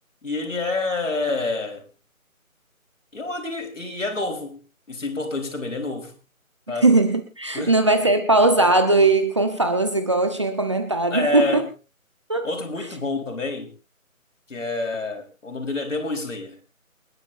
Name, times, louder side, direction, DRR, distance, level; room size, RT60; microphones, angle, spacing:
voice 1, 0.2-1.8 3.1-4.6 4.9-6.2 6.7-6.9 7.5-7.8 11.1-11.7 12.4-13.7 14.5-16.6, left 3 dB, 60° left, 4.4 m, -28 dB
voice 2, 6.8-11.6 12.3-12.5, right 2 dB, 20° right, 1.1 m, -19 dB
29.0 x 10.0 x 2.7 m
figure-of-eight pair, 165°, 42 cm